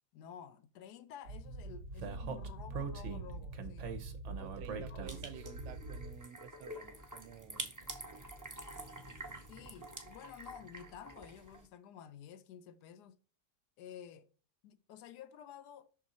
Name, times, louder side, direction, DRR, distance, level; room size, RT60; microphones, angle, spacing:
voice 1, 0.1-3.9 4.9-5.1 9.5-13.1 13.8-14.3 14.6-15.9, left 9 dB, 80° left, 1.1 m, -52 dB
Speech, 1.3-6.2, right 4 dB, 55° right, 1.0 m, -42 dB
voice 2, 4.4-7.7, right 10 dB, 80° right, 1.2 m, -51 dB
sound 1, 5.1-11.7, right 1 dB, 15° right, 0.6 m, -47 dB
6.2 x 3.7 x 4.1 m
omnidirectional pair, 1.8 m